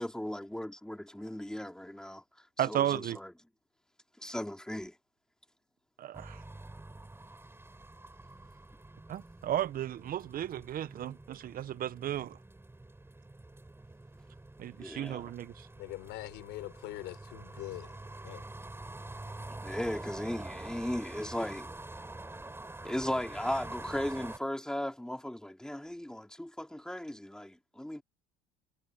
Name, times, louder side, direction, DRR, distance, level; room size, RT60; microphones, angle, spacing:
voice 1, 0.0-2.2 2.6-3.3 4.2-4.9 14.8-15.3 19.5-21.7 22.8-28.0, left 1 dB, 5° left, 3.9 m, -37 dB
voice 2, 2.6-3.2 6.0-6.4 9.1-12.4 14.6-15.7, right 11 dB, 50° right, 1.2 m, -34 dB
sound 1, 6.1-24.4, right 2 dB, 10° right, 7.5 m, -47 dB
voice 3, 15.8-18.0 18.2-18.4, left 19 dB, 65° left, 4.6 m, -43 dB
hypercardioid pair, 70°, 19 cm